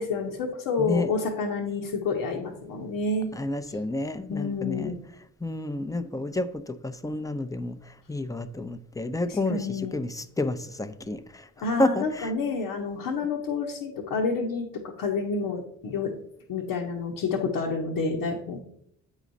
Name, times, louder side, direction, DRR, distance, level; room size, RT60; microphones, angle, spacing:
voice 1, 0.0-3.3 4.3-4.9 9.3-10.0 11.6-14.7 15.0-16.1 16.5-18.6, left 4 dB, 75° left, -2 dB, 1.2 m, -29 dB
voice 2, 0.8-1.1 3.3-5.0 5.4-11.5 11.8-12.3, left 2 dB, 10° left, 10 dB, 0.8 m, -30 dB
8.2 x 4.9 x 4.1 m, 0.69 s
hypercardioid pair, 50°, 36 cm